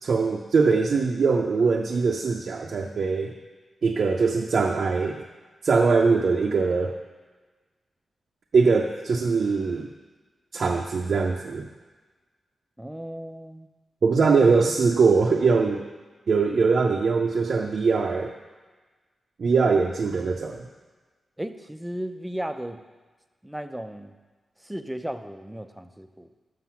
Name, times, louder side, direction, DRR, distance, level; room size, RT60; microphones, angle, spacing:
voice 1, 0.0-3.4 3.8-5.2 5.6-7.0 8.5-9.9 10.5-11.7 14.0-15.8 16.3-18.3 19.4-20.7, right 4 dB, 65° right, 0 dB, 0.5 m, -22 dB
voice 2, 12.8-13.7 14.4-14.6 21.4-22.8 23.4-24.1 24.6-26.3, right 1 dB, 10° right, 8 dB, 0.5 m, -34 dB
6.4 x 5.9 x 5.7 m, 1.3 s
cardioid pair, 75°, 0 cm